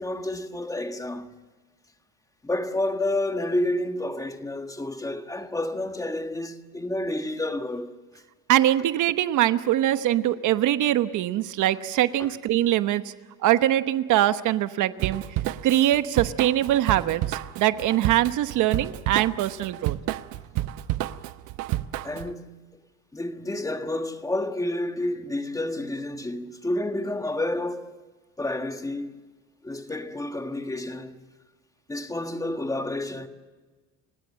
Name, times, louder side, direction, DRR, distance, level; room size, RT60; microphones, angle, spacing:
voice 1, 0.0-1.3 2.4-7.9 12.2-12.3 20.3-20.4 22.0-22.6 23.1-27.9 28.4-29.2 29.6-31.2 31.9-33.3, left 1 dB, 10° left, 1.4 m, -30 dB
voice 2, 8.5-13.1 13.4-15.2 15.6-20.0, right 13 dB, 65° right, 1.1 m, -23 dB
Drum kit / Drum, 15.0-22.3, right 15 dB, 90° right, 0.9 m, -30 dB
30.0 x 16.5 x 7.5 m
cardioid pair, 140°, 33 cm